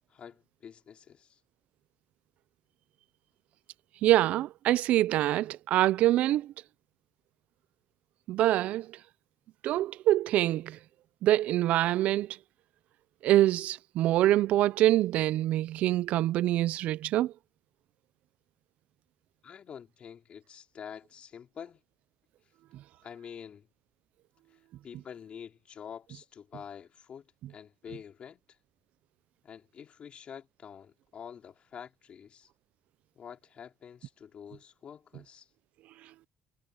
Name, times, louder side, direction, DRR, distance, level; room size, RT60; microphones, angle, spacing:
voice 1, 0.1-1.4 19.4-21.8 23.0-23.7 24.5-28.4 29.4-32.5 33.1-35.5, left 8 dB, 50° left, 3.3 m, -47 dB
voice 2, 4.0-6.5 8.3-8.9 9.6-10.8 11.2-12.4 13.2-17.3, right 14 dB, 70° right, 0.7 m, -25 dB
supercardioid pair, 70°, 2 cm